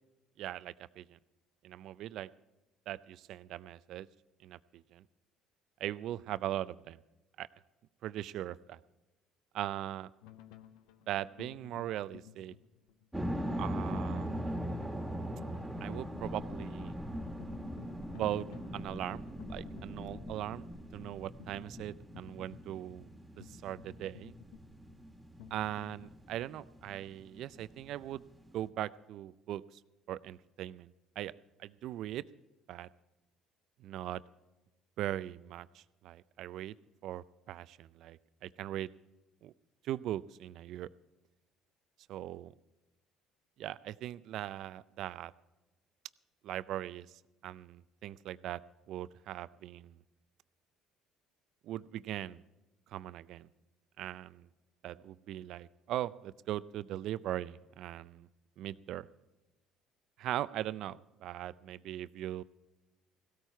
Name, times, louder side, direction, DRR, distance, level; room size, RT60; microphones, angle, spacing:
voice 1, 0.4-1.2 1.6-2.3 2.9-4.1 4.4-5.0 5.8-7.0 7.4-7.5 8.0-8.8 9.5-10.1 11.1-12.5 13.6-14.4 15.8-16.9 18.2-18.5 18.7-19.2 19.5-20.7 20.9-24.3 25.5-28.2 28.5-29.8 30.1-31.3 31.6-32.2 32.7-32.9 33.8-34.2 35.0-36.8 37.0-38.9 39.4-39.5 39.8-40.9 42.1-42.5 43.6-45.3 46.4-47.1 47.4-48.6 48.9-50.0 51.6-52.4 52.9-53.5 54.0-54.5 54.8-58.3 58.6-59.1 60.2-62.4, right 13 dB, 65° right, 18 dB, 0.4 m, -40 dB
sound 1, 10.2-26.1, left 12 dB, 80° left, 0.8 m, -56 dB
sound 2, 13.1-28.7, equal, 5° right, 1.9 m, -41 dB
17.0 x 13.5 x 4.5 m, 1.1 s
hypercardioid pair, 70°, 0 cm